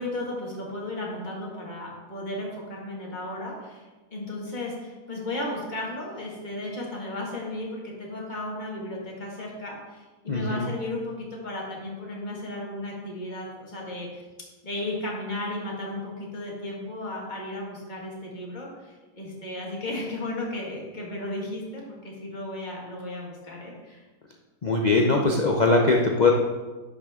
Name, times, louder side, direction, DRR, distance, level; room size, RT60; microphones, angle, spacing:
voice 1, 0.0-3.8 4.1-14.1 14.6-24.0, left 1 dB, 25° left, -3 dB, 1.9 m, -34 dB
voice 2, 10.3-10.7 24.6-26.3, left 3 dB, 70° left, 1 dB, 0.4 m, -21 dB
10.5 x 6.3 x 3.7 m, 1.2 s
omnidirectional pair, 1.8 m